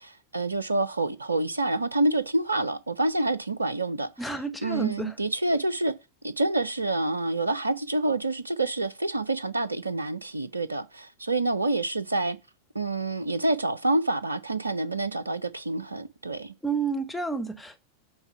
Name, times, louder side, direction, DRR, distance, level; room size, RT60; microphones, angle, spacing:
voice 1, 0.0-4.1 4.6-5.9 6.2-12.4 12.7-16.5, right 2 dB, 80° right, 0.4 m, -27 dB
voice 2, 4.2-5.2 16.6-17.8, right 4 dB, ahead, 0.8 m, -30 dB
7.9 x 3.3 x 5.8 m
figure-of-eight pair, 90°, 0 cm